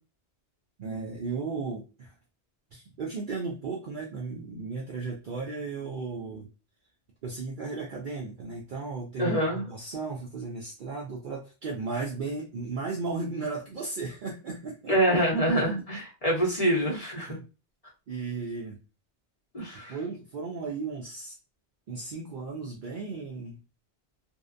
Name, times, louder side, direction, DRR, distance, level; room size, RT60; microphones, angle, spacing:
voice 1, 0.8-2.1 2.7-6.5 7.2-14.9 17.3-17.4 18.1-18.8 19.9-21.4 21.9-23.6, right 4 dB, 60° right, -1 dB, 0.6 m, -35 dB
voice 2, 9.2-9.6 14.9-17.4 19.5-19.9, right 1 dB, 35° left, -3 dB, 0.9 m, -25 dB
2.7 x 2.0 x 2.4 m, 0.32 s
omnidirectional pair, 1.1 m